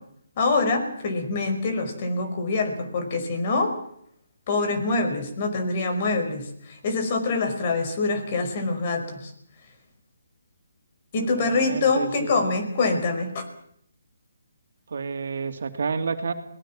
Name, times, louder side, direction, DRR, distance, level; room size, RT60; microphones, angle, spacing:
voice 1, 0.4-3.7 4.5-9.3 11.1-13.4, left 3 dB, 40° left, 7 dB, 5.2 m, -25 dB
voice 2, 11.2-12.4 14.9-16.3, right 5 dB, 60° right, 6 dB, 2.6 m, -30 dB
22.0 x 19.0 x 7.4 m, 0.69 s
figure-of-eight pair, 150°, 0 cm